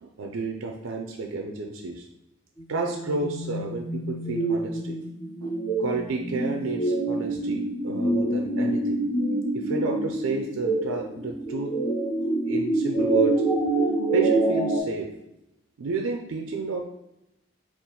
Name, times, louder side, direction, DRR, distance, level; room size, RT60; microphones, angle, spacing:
voice 1, 0.0-2.1 2.7-5.0 5.4-9.0 9.5-11.7 12.5-13.4 14.1-15.1 15.8-16.8, right 3 dB, 75° right, 2 dB, 0.4 m, -31 dB
sound 1, 2.6-14.8, right 2 dB, 20° left, 0.6 m, -26 dB
4.2 x 2.5 x 3.8 m, 0.86 s
head